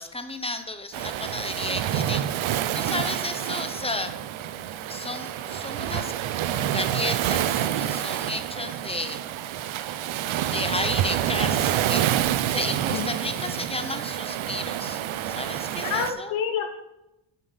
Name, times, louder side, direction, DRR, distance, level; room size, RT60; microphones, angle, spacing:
voice 1, 0.0-4.1 4.9-6.1 6.7-9.2 10.5-12.1 12.5-16.3, left 2 dB, 15° left, 9 dB, 0.6 m, -33 dB
Waves surf, 0.9-16.1, right 11 dB, 80° right, 0.6 m, -28 dB
voice 2, 15.8-16.7, left 7 dB, 85° left, 6 dB, 1.1 m, -28 dB
8.3 x 5.5 x 5.5 m, 0.91 s
cardioid pair, 110°, 47 cm